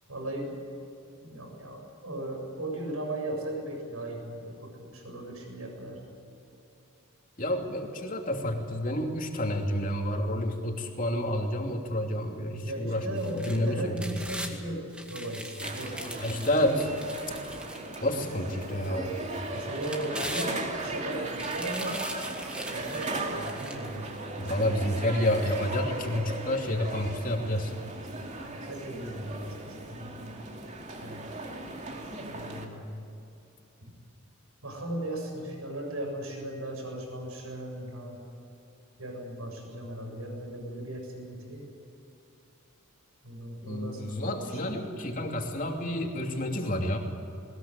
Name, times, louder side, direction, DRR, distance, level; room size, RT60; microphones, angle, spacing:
voice 1, 0.1-0.5 1.2-6.0 12.6-14.8 15.1-16.5 19.5-22.0 22.7-24.0 28.4-30.4 31.0-31.2 32.2-33.1 33.8-33.9 34.6-38.2 39.0-41.7 43.2-44.9, right 1 dB, 85° right, 2 dB, 7.4 m, -37 dB
voice 2, 7.4-13.9 16.2-16.9 18.0-19.1 24.4-27.7 43.6-47.0, left 1 dB, 40° left, 2 dB, 2.9 m, -29 dB
sound 1, 13.2-14.5 14.9-18.3 18.8-18.9 19.6-20.9 21.3-24.0 24.5-24.6, right 1 dB, 5° right, 2.1 m, -40 dB
sound 2, 15.6-32.6, right 2 dB, 35° right, 2.8 m, -37 dB
21.0 x 21.0 x 9.1 m, 2.8 s
head